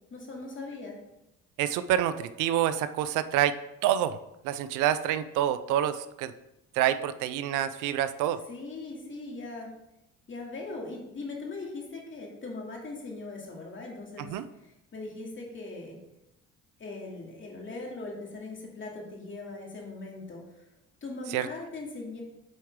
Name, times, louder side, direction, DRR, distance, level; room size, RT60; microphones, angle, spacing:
voice 1, 0.1-1.0 8.5-9.7 10.3-16.0 16.8-20.7 21.0-22.2, left 3 dB, 40° left, -1 dB, 2.3 m, -40 dB
voice 2, 1.6-4.2 4.4-6.3 6.7-8.4 14.2-14.4 21.3-21.5, right 11 dB, 80° right, 13 dB, 0.5 m, -27 dB
8.2 x 4.4 x 3.6 m, 0.88 s
supercardioid pair, 70°, 31 cm